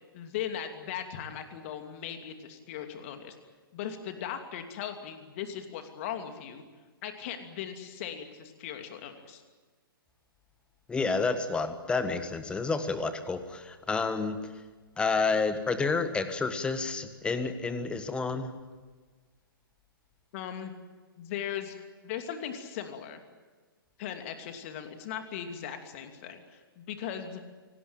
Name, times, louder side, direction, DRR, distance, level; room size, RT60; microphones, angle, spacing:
voice 1, 0.1-3.4 3.7-6.6 7.0-9.4 20.3-20.7 21.2-23.2 24.0-27.4, left 9 dB, 35° left, 6 dB, 2.8 m, -38 dB
voice 2, 10.9-14.4 15.0-18.5, left 4 dB, 10° left, 10 dB, 1.5 m, -29 dB
25.5 x 19.0 x 9.1 m, 1.4 s
figure-of-eight pair, 120°, 12 cm